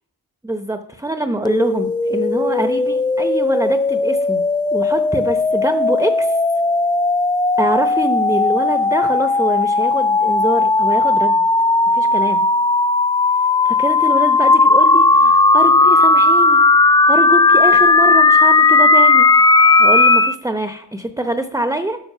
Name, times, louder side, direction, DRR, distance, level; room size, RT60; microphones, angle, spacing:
voice 1, 0.4-4.4 4.7-6.4 7.6-11.4 11.9-12.4 13.6-22.0, right 1 dB, 10° right, 8 dB, 0.8 m, -24 dB
sound 1, 1.5-20.3, left 3 dB, 10° left, 0.3 m, -15 dB
12.0 x 6.5 x 5.6 m, 0.71 s
cardioid pair, 75°, 40 cm